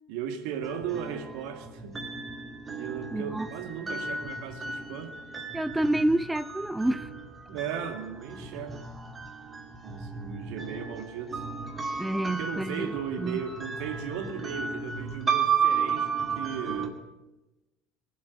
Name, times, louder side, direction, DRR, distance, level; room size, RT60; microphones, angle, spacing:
voice 1, 0.1-2.0 2.8-5.2 7.5-8.8 9.8-11.4 12.2-17.0, right 7 dB, 70° right, 7 dB, 2.0 m, -36 dB
sound 1, 0.6-16.9, right 6 dB, 25° right, 2.4 m, -34 dB
voice 2, 3.1-3.5 5.5-7.1 12.0-13.4, right 1 dB, 10° right, 14 dB, 0.5 m, -28 dB
19.0 x 8.5 x 8.4 m, 1.1 s
hypercardioid pair, 80°, 0 cm